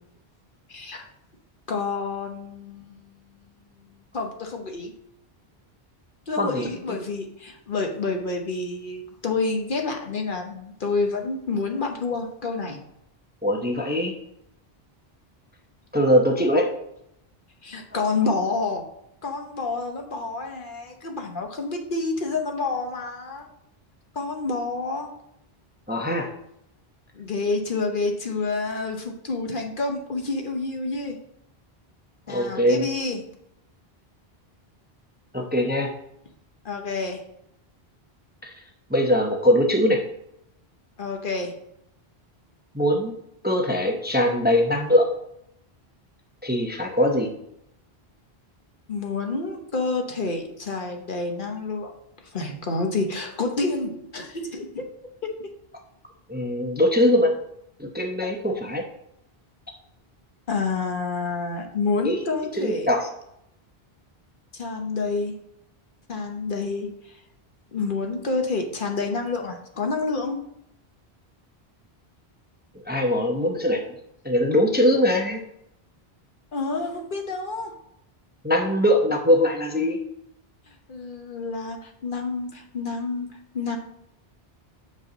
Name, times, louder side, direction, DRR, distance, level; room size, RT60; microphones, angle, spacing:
voice 1, 0.7-1.1 1.7-3.0 3.5-3.8 4.1-4.9 6.3-12.8 17.6-18.8 19.2-23.5 24.1-25.1 27.2-31.2 32.3-33.2 36.6-37.2 41.0-41.6 48.9-51.9 52.2-54.9 55.2-55.5 58.2-58.3 60.5-62.9 64.5-65.3 66.1-67.1 67.7-70.4 76.5-77.7 80.9-83.3 83.5-83.8, left 3 dB, 55° left, 3 dB, 1.1 m, -28 dB
voice 2, 6.4-7.0 13.4-14.1 15.9-16.7 25.9-26.3 32.3-32.9 35.3-35.9 38.4-38.5 38.9-40.0 42.7-43.1 43.4-45.1 46.4-47.3 56.3-57.3 57.8-58.8 62.0-62.2 62.5-63.1 72.9-73.8 74.2-75.4 78.4-80.0, equal, 10° right, 2 dB, 0.7 m, -21 dB
6.9 x 5.3 x 3.9 m, 0.77 s
omnidirectional pair, 1.1 m